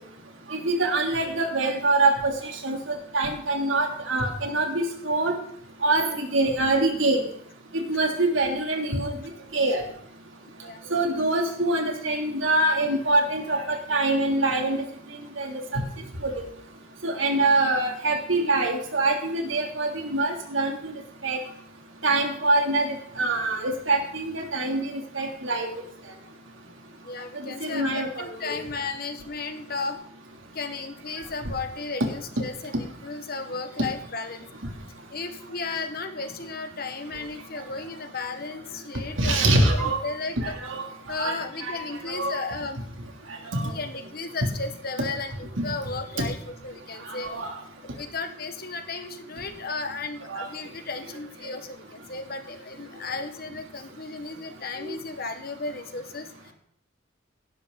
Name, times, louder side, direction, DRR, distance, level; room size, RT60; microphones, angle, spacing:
voice 1, 0.5-2.3 2.6-2.8 3.1-5.3 5.8-7.2 7.7-9.1 9.5-9.8 10.9-14.8 15.4-15.8 17.0-20.9 21.2-21.4 22.0-25.7 27.6-28.5 39.2-40.0 40.4-40.8 41.2-41.8 42.1-42.4 43.5-43.6 46.2-46.3 47.2-47.5 50.3-50.5, right 2 dB, 90° right, 2 dB, 3.3 m, -24 dB
voice 2, 27.0-30.0 30.5-34.5 35.1-40.6 41.1-42.8 43.6-47.5 47.8-56.5, left 3 dB, 50° left, 7 dB, 1.6 m, -34 dB
16.5 x 12.0 x 4.1 m, 0.66 s
head